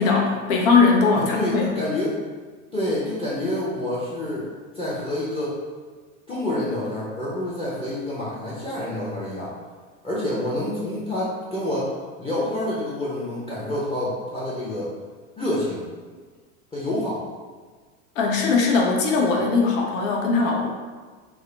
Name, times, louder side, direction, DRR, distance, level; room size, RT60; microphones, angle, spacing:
voice 1, 0.0-1.7 18.2-20.7, left 4 dB, 70° left, -1 dB, 0.8 m, -20 dB
voice 2, 1.2-2.2 2.7-4.5 4.7-5.7 6.3-9.5 10.0-11.9 12.2-14.9 15.4-15.9 16.7-17.2, left 1 dB, 15° left, -8 dB, 0.7 m, -27 dB
3.6 x 2.1 x 3.2 m, 1.5 s
hypercardioid pair, 100°, 42 cm